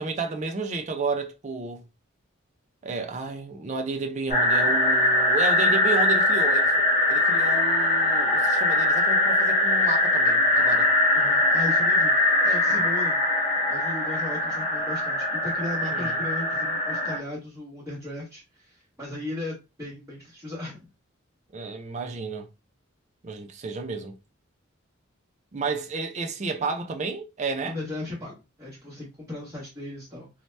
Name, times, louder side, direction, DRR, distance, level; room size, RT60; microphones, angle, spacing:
voice 1, 0.0-1.8 2.8-6.7 7.1-10.9 15.8-16.2 21.5-22.5 23.2-24.2 25.5-27.8, right 4 dB, 35° right, 0.4 m, -31 dB
sound 1, 4.3-17.2, left 1 dB, 30° left, 0.7 m, -22 dB
voice 2, 11.1-13.2 13.7-20.8 27.6-30.3, left 2 dB, 15° right, 1.0 m, -36 dB
2.8 x 2.0 x 3.2 m
head